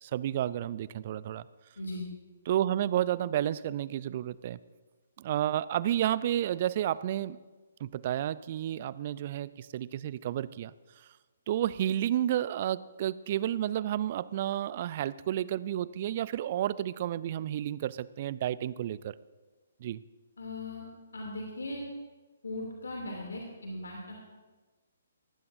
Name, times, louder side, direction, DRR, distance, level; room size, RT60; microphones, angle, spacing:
voice 1, 0.0-1.5 2.5-4.6 5.2-7.4 7.8-10.7 11.5-19.1 19.8-20.0, right 11 dB, 40° right, 18 dB, 0.4 m, -31 dB
voice 2, 1.8-2.1 20.4-20.9 21.1-21.8 22.4-24.2, left 1 dB, 70° left, -1 dB, 2.7 m, -38 dB
19.0 x 15.5 x 2.7 m, 1.3 s
figure-of-eight pair, 130°, 0 cm